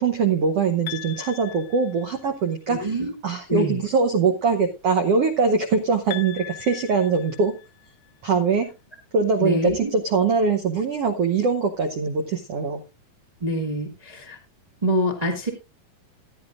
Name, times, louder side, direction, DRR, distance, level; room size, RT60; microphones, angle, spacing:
voice 1, 0.0-3.0 3.2-7.5 8.2-8.7 9.1-12.8, right 5 dB, 75° right, 4 dB, 1.4 m, -22 dB
sound 1, 0.9-2.5 6.1-8.1, left 15 dB, 75° left, 1.6 m, -39 dB
voice 2, 2.7-3.1 3.5-3.8 9.4-9.9 13.4-14.4 14.8-15.5, equal, 50° right, 1 dB, 0.4 m, -25 dB
15.0 x 11.0 x 2.5 m, 0.27 s
omnidirectional pair, 4.0 m